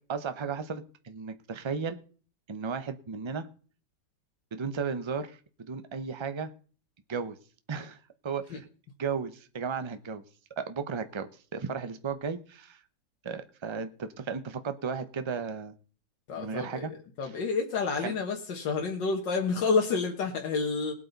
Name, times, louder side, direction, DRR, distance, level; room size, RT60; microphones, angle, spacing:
voice 1, 0.1-2.0 2.5-3.5 4.5-5.4 5.7-6.5 7.1-7.4 7.7-8.0 8.2-8.7 9.0-10.2 10.6-12.8 13.2-15.7 16.4-16.9 17.2-17.4 18.0-18.1, right 5 dB, 40° right, 10 dB, 0.4 m, -34 dB
voice 2, 16.3-16.9 17.2-20.9, left 4 dB, 85° left, 1 dB, 2.0 m, -29 dB
19.5 x 8.4 x 4.0 m, 0.41 s
omnidirectional pair, 1.9 m